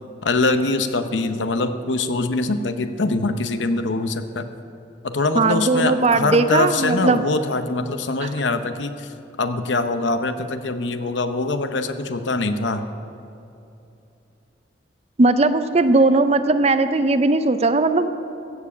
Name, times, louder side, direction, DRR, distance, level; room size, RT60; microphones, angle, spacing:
voice 1, 0.2-4.5 5.0-9.1 9.4-12.8, left 3 dB, 75° left, 9 dB, 0.8 m, -23 dB
voice 2, 5.4-7.2 8.2-8.3 15.2-18.1, right 2 dB, 35° right, 10 dB, 0.5 m, -18 dB
15.5 x 7.3 x 7.2 m, 2.8 s
head